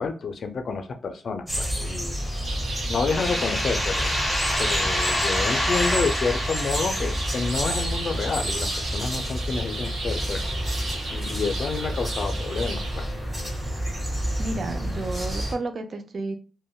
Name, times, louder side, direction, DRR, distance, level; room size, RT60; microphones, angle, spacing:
voice 1, 0.0-2.2 2.9-4.2 4.6-10.4 11.1-13.1, left 4 dB, 55° left, 7 dB, 0.4 m, -29 dB
sound 1, 1.5-15.5, equal, 15° right, 1.1 m, -29 dB
sound 2, 2.5-13.0, right 2 dB, 85° right, 0.7 m, -35 dB
sound 3, 3.1-8.6, left 1 dB, 10° left, 0.7 m, -28 dB
voice 2, 14.4-16.4, right 2 dB, 55° right, 8 dB, 0.4 m, -31 dB
3.4 x 2.1 x 2.3 m, 0.37 s
cardioid pair, 85°, 0 cm